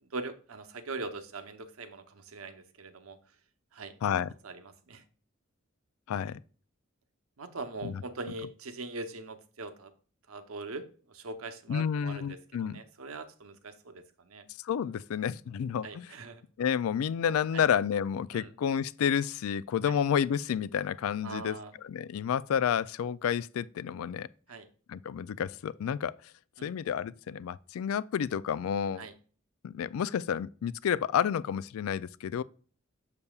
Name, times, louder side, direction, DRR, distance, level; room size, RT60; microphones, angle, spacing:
voice 1, 0.0-3.2 3.7-4.0 4.4-5.0 6.2-6.3 7.4-9.9 10.3-14.5 15.8-16.4 17.5-17.6 18.3-18.5 19.9-20.0 21.2-21.7 24.5-24.7 26.6-26.7 29.0-29.1, right 3 dB, 90° right, 0.8 m, -42 dB
voice 2, 4.0-4.3 6.1-6.4 7.8-8.0 11.7-12.8 14.6-16.1 16.6-21.6 21.8-24.3 24.9-26.2 26.6-29.1 29.6-32.4, left 8 dB, 85° left, 0.3 m, -30 dB
7.0 x 6.7 x 2.3 m
head